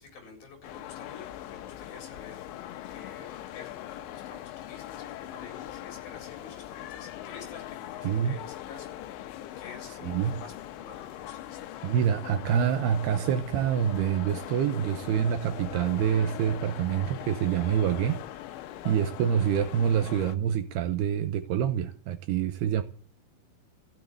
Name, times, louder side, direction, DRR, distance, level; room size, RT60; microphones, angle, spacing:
voice 1, 0.0-2.5 2.9-9.1 9.6-11.6, left 5 dB, 55° left, 5.5 m, -49 dB
sound 1, 0.6-20.4, left 13 dB, 85° left, 3.3 m, -41 dB
voice 2, 8.0-8.4 10.0-10.3 11.8-18.2 18.8-22.8, right 9 dB, 75° right, 2.6 m, -26 dB
15.0 x 6.8 x 9.3 m
omnidirectional pair, 5.1 m